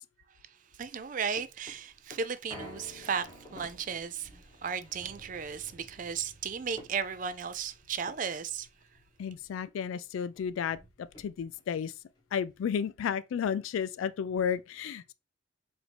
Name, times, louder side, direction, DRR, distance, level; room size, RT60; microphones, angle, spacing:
voice 1, 0.8-4.3 4.6-8.7, right 6 dB, 40° right, 0.3 m, -35 dB
sound 1, 0.9-9.6 9.9-10.0 10.3-11.7 12.2-12.3, left 1 dB, 20° left, 1.2 m, -52 dB
voice 2, 9.2-11.9 12.3-15.1, left 7 dB, 90° left, 0.3 m, -32 dB
4.8 x 2.6 x 3.3 m
head